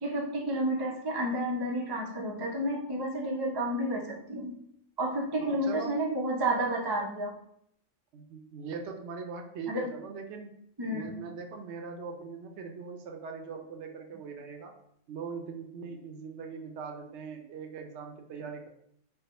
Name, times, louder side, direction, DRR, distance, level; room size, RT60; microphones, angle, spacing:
voice 1, 0.0-4.5 5.0-7.3 9.7-9.9 10.8-11.1, right 1 dB, 35° right, 0 dB, 0.3 m, -31 dB
voice 2, 5.4-5.9 8.1-10.5 10.9-14.7 15.1-18.7, right 5 dB, 70° right, 4 dB, 0.8 m, -41 dB
3.3 x 2.0 x 4.1 m, 0.70 s
omnidirectional pair, 1.2 m